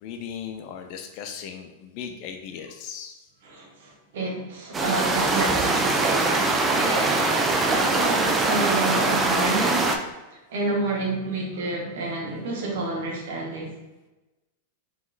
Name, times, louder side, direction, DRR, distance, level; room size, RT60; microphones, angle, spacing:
voice 1, 0.0-3.3, left 7 dB, 50° left, 4 dB, 0.4 m, -37 dB
voice 2, 3.4-6.4 6.7-9.9 10.3-13.7, right 2 dB, 65° right, -1 dB, 1.0 m, -29 dB
sound 1, 4.7-10.0, right 3 dB, 20° right, 0.4 m, -22 dB
3.7 x 3.0 x 2.4 m, 1.1 s
hypercardioid pair, 100°, 0 cm